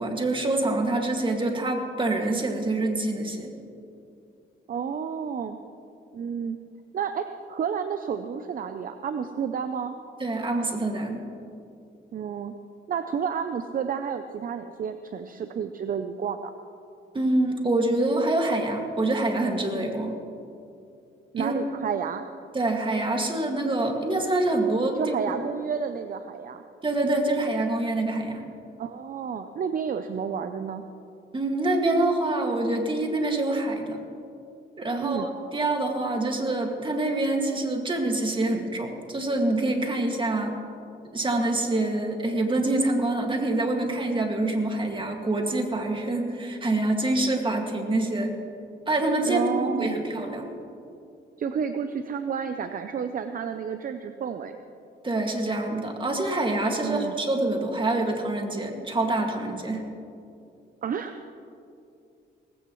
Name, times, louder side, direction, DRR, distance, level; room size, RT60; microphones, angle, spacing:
voice 1, 0.0-3.5 10.2-11.3 17.1-20.2 21.4-21.5 22.5-25.1 26.8-28.4 31.3-34.0 34.8-40.5 41.1-48.3 48.9-50.5 55.0-59.8, right 2 dB, 25° right, 2 dB, 2.2 m, -26 dB
voice 2, 4.7-5.6 6.1-6.6 6.9-9.9 12.1-12.5 12.9-16.5 21.3-22.2 24.9-26.6 28.8-30.8 35.0-35.3 49.2-50.0 51.4-54.6 56.8-57.2 60.8-61.2, right 7 dB, 45° right, 8 dB, 0.7 m, -30 dB
18.5 x 16.0 x 3.2 m, 2.6 s
cardioid pair, 90°, 20 cm